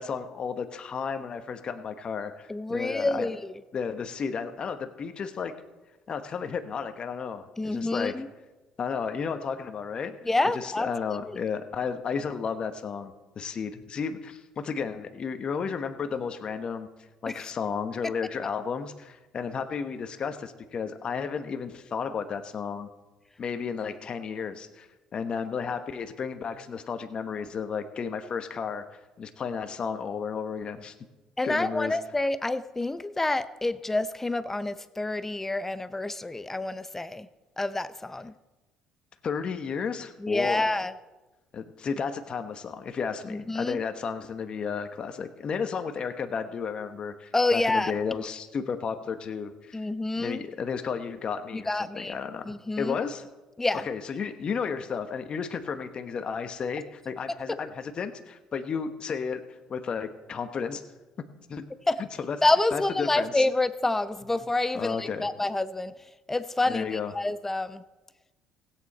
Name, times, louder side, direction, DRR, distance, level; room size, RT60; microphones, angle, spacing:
voice 1, 0.0-3.3 3.7-5.5 6.1-8.1 8.8-10.1 10.5-16.9 17.2-22.9 23.4-24.9 25.1-28.8 29.2-30.9 31.4-32.0 39.2-40.7 41.5-49.8 50.2-53.2 53.7-59.4 59.7-60.8 61.5-61.6 62.2-62.4 62.7-63.4 64.7-65.3 66.7-67.1, left 6 dB, 45° left, 8 dB, 1.1 m, -33 dB
voice 2, 2.5-3.5 7.6-8.3 10.3-10.9 11.3-11.4 17.3-17.4 31.4-37.3 37.6-38.3 40.2-40.9 43.3-43.8 47.3-47.9 49.7-50.4 51.5-52.1 52.5-53.0 53.6-53.9 61.9-62.0 62.4-65.9 66.3-67.8, left 2 dB, 15° left, 14 dB, 0.5 m, -28 dB
16.0 x 8.8 x 4.2 m, 1.1 s
supercardioid pair, 80°, 2 cm